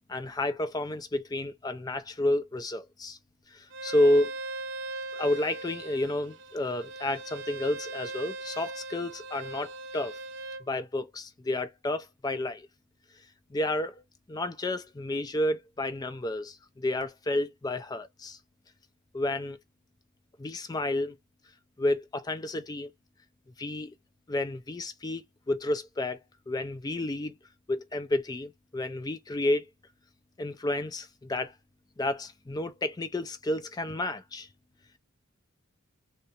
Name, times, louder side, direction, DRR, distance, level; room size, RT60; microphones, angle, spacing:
voice 1, 0.1-3.2 3.5-4.3 5.1-10.2 10.7-12.7 13.5-14.0 14.3-18.4 19.1-19.6 20.4-21.2 21.8-22.9 23.6-23.9 24.3-26.2 26.5-27.4 27.7-29.7 30.4-31.5 32.0-34.5, left 1 dB, 15° left, 0.3 m, -30 dB
Bowed string instrument, 3.7-10.6, right 2 dB, 55° right, 0.4 m, -39 dB
3.6 x 2.1 x 2.6 m
head